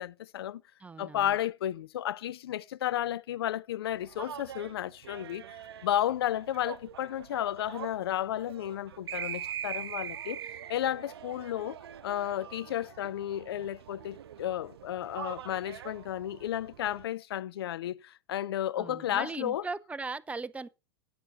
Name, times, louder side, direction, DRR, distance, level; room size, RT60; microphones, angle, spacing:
voice 1, 0.0-0.6 1.0-5.6 5.8-11.8 12.0-19.6, left 12 dB, 70° left, 0.5 m, -33 dB
voice 2, 0.8-1.4 18.8-20.7, right 3 dB, 10° right, 0.6 m, -38 dB
sound 1, 3.9-17.1, right 10 dB, 75° right, 0.7 m, -43 dB
10.0 x 8.8 x 4.1 m
hypercardioid pair, 90°, 13 cm